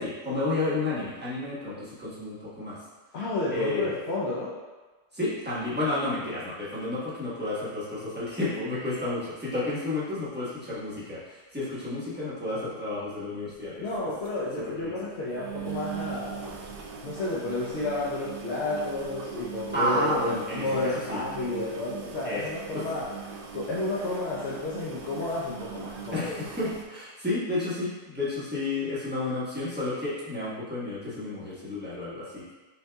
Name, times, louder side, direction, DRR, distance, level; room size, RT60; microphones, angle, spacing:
voice 1, 0.0-2.8 3.5-3.9 5.1-13.8 14.8-14.9 19.7-21.2 22.2-22.4 22.7-22.8 26.1-32.4, left 2 dB, 10° right, -10 dB, 1.2 m, -31 dB
voice 2, 3.1-4.5 13.8-16.5 17.0-20.2 20.5-23.1 23.5-26.3, left 2 dB, 65° left, -7 dB, 0.9 m, -31 dB
sound 1, 13.5-13.6 13.9-14.0 14.2-14.3 14.7-14.8 15.3-26.8, right 6 dB, 60° right, 0.6 m, -40 dB
6.3 x 2.7 x 2.3 m, 1.3 s
omnidirectional pair, 1.3 m